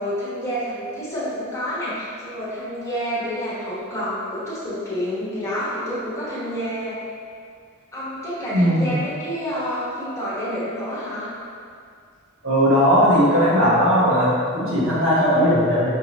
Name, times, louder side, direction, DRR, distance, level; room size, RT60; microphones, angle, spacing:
voice 1, 0.0-7.0 7.9-11.3, equal, 15° left, -11 dB, 1.2 m, -28 dB
voice 2, 8.5-9.0 12.4-15.9, equal, 65° right, -7 dB, 1.1 m, -18 dB
5.5 x 2.8 x 2.9 m, 2.3 s
head